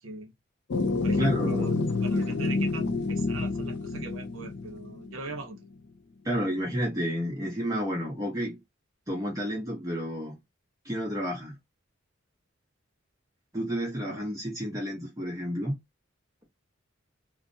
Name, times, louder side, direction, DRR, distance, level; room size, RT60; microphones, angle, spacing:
voice 1, 0.0-0.3 1.0-5.6 14.1-14.2, right 3 dB, 85° right, 0.7 m, -40 dB
sound 1, 0.7-5.3, left 3 dB, 55° left, 0.4 m, -28 dB
voice 2, 1.0-1.9 6.2-8.6 9.1-10.4 10.8-11.6 13.5-15.7, equal, 15° right, 0.7 m, -31 dB
2.4 x 2.0 x 2.5 m
head